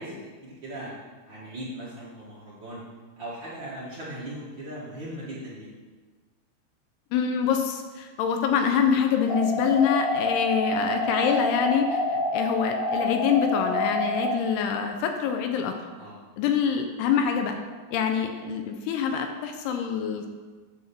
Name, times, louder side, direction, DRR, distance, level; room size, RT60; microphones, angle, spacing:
voice 1, 0.0-2.8 3.2-5.7 12.1-12.2 16.0-16.2 19.9-20.1, right 1 dB, 70° right, -8 dB, 1.1 m, -39 dB
voice 2, 7.1-12.0 12.3-15.8 16.4-17.6 17.9-20.3, left 7 dB, 80° left, 5 dB, 2.6 m, -25 dB
sound 1, 9.3-14.3, left 2 dB, 55° left, 3.1 m, -27 dB
9.5 x 4.3 x 6.8 m, 1.4 s
omnidirectional pair, 4.8 m